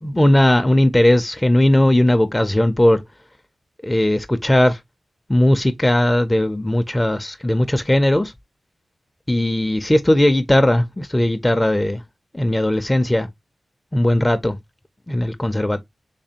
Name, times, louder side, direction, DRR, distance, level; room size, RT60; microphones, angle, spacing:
voice 1, 0.0-3.0 3.8-4.8 5.3-8.3 9.3-12.0 12.3-13.3 13.9-14.6 15.1-15.8, left 1 dB, 15° left, 0.4 m, -17 dB
3.4 x 3.3 x 2.7 m
cardioid pair, 65°, 0 cm